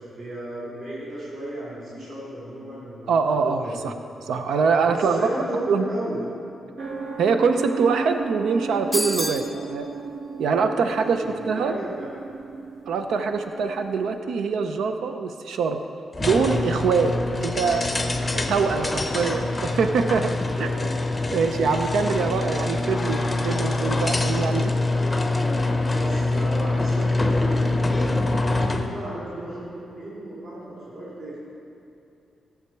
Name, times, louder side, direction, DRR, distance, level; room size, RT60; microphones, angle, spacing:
voice 1, 0.0-3.0 3.4-3.7 4.8-6.2 9.2-9.6 10.7-12.1 18.6-19.5 20.5-21.0 22.3-22.9 25.9-31.4, right 1 dB, 55° right, -8 dB, 3.0 m, -34 dB
voice 2, 3.1-3.9 4.2-5.2 5.7-5.8 7.2-9.9 10.4-11.7 12.9-15.8 16.2-17.2 17.4-20.3 20.6-20.7 21.3-24.7, right 5 dB, 90° right, 7 dB, 0.5 m, -24 dB
sound 1, 6.8-14.2, right 4 dB, 70° right, 1.1 m, -34 dB
sound 2, 8.9-9.5, equal, 5° right, 0.9 m, -27 dB
sound 3, 16.1-28.9, left 2 dB, 15° left, 0.6 m, -25 dB
16.0 x 7.2 x 4.5 m, 2.7 s
wide cardioid pair, 170°, 0 cm